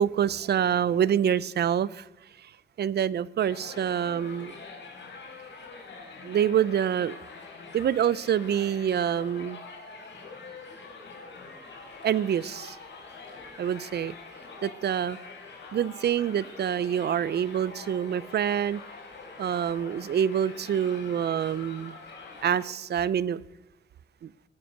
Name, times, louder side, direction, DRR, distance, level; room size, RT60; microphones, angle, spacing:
voice 1, 0.0-2.1 2.4-2.5 2.8-4.6 6.2-7.2 7.7-9.6 12.0-12.8 13.6-14.1 14.6-15.2 15.7-18.8 19.4-22.0 22.4-23.4 24.2-24.3, right 9 dB, 60° right, 20 dB, 0.5 m, -26 dB
Crowd, 3.4-22.6, left 4 dB, 70° left, 4.1 m, -45 dB
20.0 x 9.8 x 6.5 m, 1.0 s
wide cardioid pair, 165°, 19 cm